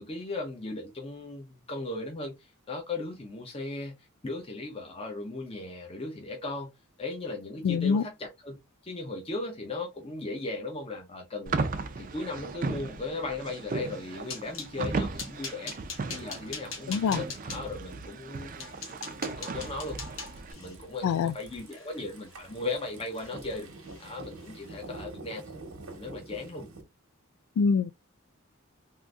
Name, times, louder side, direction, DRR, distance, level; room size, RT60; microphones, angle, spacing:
voice 1, 0.0-4.0 4.2-6.7 7.0-8.6 8.8-11.6 12.0-15.8 16.1-20.0 20.5-23.7 24.0-25.5 25.9-26.7, left 2 dB, 30° left, 0.7 m, -37 dB
voice 2, 7.6-8.0 16.9-17.2 21.0-21.3 27.6-27.9, left 6 dB, 85° left, 0.3 m, -24 dB
sound 1, 11.5-20.5, right 3 dB, 40° right, 0.4 m, -36 dB
sound 2, 13.8-14.7 15.2-17.6 18.2-18.3 18.6-22.8 23.1-23.6 23.8-24.0 24.4-24.6, left 5 dB, 65° left, 1.1 m, -42 dB
sound 3, 16.0-26.8, right 3 dB, 85° right, 1.0 m, -48 dB
3.7 x 2.6 x 2.4 m
head